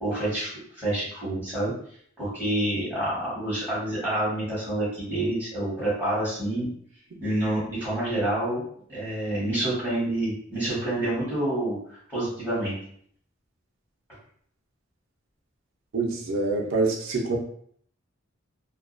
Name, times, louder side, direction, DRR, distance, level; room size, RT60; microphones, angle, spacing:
voice 1, 0.0-1.7 2.2-6.7 7.2-8.6 8.9-11.8 12.1-12.7, right 1 dB, 10° left, -10 dB, 1.1 m, -28 dB
voice 2, 15.9-17.4, right 3 dB, 75° right, 0 dB, 0.5 m, -25 dB
2.3 x 2.2 x 2.4 m, 0.63 s
head